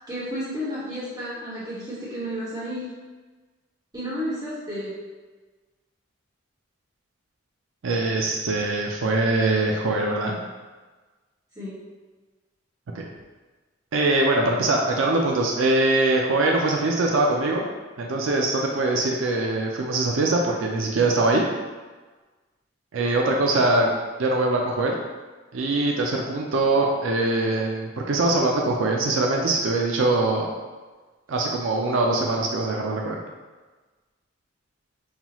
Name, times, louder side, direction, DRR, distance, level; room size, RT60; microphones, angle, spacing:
voice 1, 0.1-2.8 3.9-4.9 11.5-11.7, equal, 20° right, -9 dB, 1.2 m, -31 dB
voice 2, 7.8-10.4 12.9-13.0 13.9-17.6 18.0-21.4 22.9-23.9 24.2-25.0 25.5-30.5 31.3-33.2, right 2 dB, 80° right, 0 dB, 0.4 m, -22 dB
5.5 x 2.3 x 2.9 m, 1.3 s
head